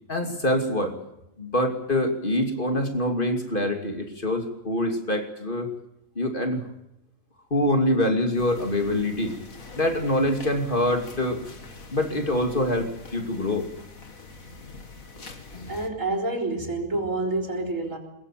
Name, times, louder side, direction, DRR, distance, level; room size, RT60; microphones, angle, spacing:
voice 1, 0.1-1.0 1.4-5.7 6.2-6.6 7.5-9.4 9.8-11.4 11.9-13.7 15.5-15.7, left 1 dB, 40° left, 5 dB, 2.8 m, -25 dB
sound 1, 8.3-15.9, left 3 dB, 90° left, 2.7 m, -44 dB
voice 2, 15.7-18.0, right 2 dB, 70° right, 2 dB, 4.2 m, -28 dB
22.5 x 21.5 x 7.5 m, 0.86 s
omnidirectional pair, 1.4 m